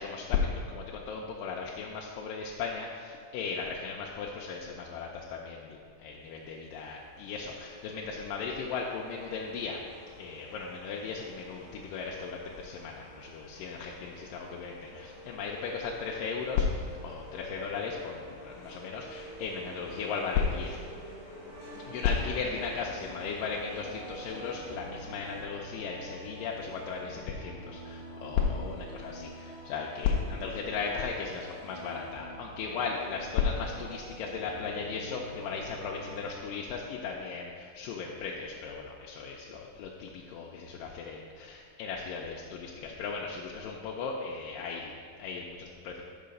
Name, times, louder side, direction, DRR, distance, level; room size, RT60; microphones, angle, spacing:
voice 1, 0.0-9.8 10.2-20.8 21.9-44.9 45.2-46.0, left 5 dB, 80° left, -1 dB, 2.0 m, -35 dB
sound 1, 6.5-25.4, equal, 25° left, 0.5 m, -49 dB
sound 2, 21.5-36.3, right 1 dB, 45° right, 2.3 m, -46 dB
6.3 x 5.6 x 5.1 m, 2.2 s
omnidirectional pair, 4.2 m